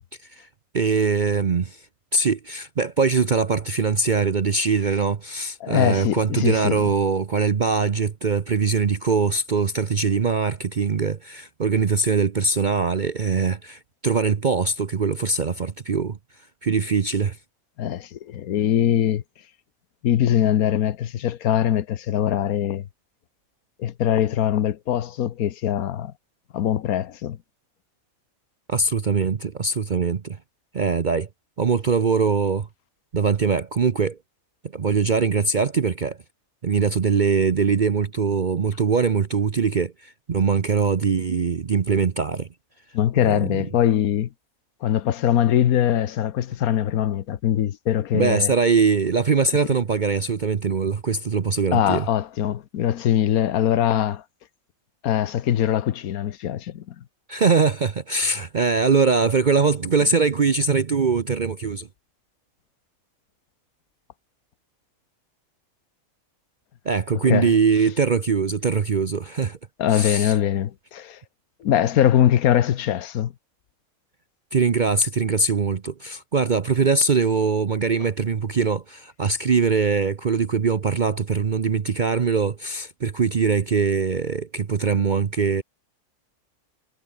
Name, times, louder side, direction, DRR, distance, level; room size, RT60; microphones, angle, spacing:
voice 1, 0.7-1.8 2.1-16.2 16.6-17.4 28.7-30.4 30.7-31.3 31.6-32.7 33.1-34.2 34.7-36.2 36.6-42.5 43.2-43.6 48.1-52.0 57.3-61.9 66.9-69.6 69.9-70.3 74.5-85.6, right 5 dB, 40° right, 0.8 m, -22 dB
voice 2, 5.6-6.9 17.8-19.2 20.0-22.9 23.8-26.1 26.5-27.4 42.9-44.3 44.8-48.5 51.7-54.2 55.0-56.9 60.0-60.1 67.2-67.5 69.8-71.2 71.6-73.3, left 10 dB, 90° left, 1.4 m, -22 dB
omnidirectional pair, 1.5 m